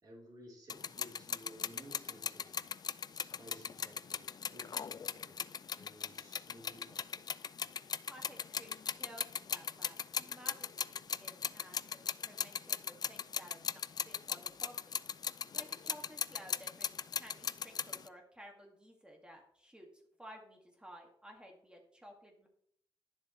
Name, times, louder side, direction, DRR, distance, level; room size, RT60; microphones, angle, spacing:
voice 1, 0.0-2.7 3.1-5.4 5.7-7.2 7.8-7.9, equal, 45° right, -4 dB, 3.7 m, -56 dB
sound 1, 0.7-18.1, left 7 dB, 45° left, 0.4 m, -39 dB
voice 2, 8.1-14.9 15.5-22.5, equal, 10° right, 1 dB, 2.0 m, -55 dB
11.0 x 7.3 x 3.1 m, 0.67 s
cardioid pair, 100°, 9 cm